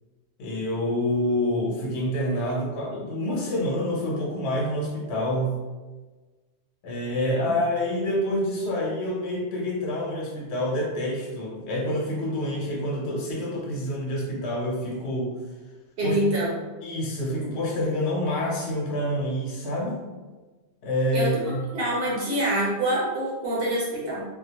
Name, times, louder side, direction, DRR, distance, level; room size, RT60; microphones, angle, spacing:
voice 1, 0.4-5.6 6.8-15.3 16.0-16.2 16.8-20.0 20.8-21.6, left 1 dB, 85° left, -2 dB, 0.9 m, -27 dB
voice 2, 16.0-16.7 21.1-21.3 21.7-24.3, right 1 dB, 65° right, -6 dB, 0.8 m, -26 dB
2.3 x 2.0 x 2.8 m, 1.3 s
omnidirectional pair, 1.1 m